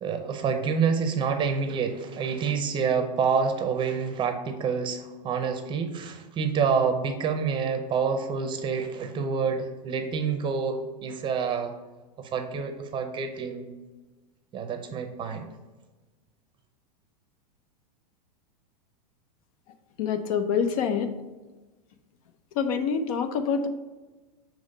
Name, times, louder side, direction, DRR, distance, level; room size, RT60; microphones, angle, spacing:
voice 1, 0.0-11.7 12.2-13.7 14.5-15.5, right 6 dB, 25° right, 6 dB, 0.7 m, -27 dB
voice 2, 20.0-21.1 22.6-23.7, left 6 dB, 55° left, 9 dB, 0.7 m, -26 dB
7.0 x 3.1 x 5.2 m, 1.2 s
supercardioid pair, 140°, 21 cm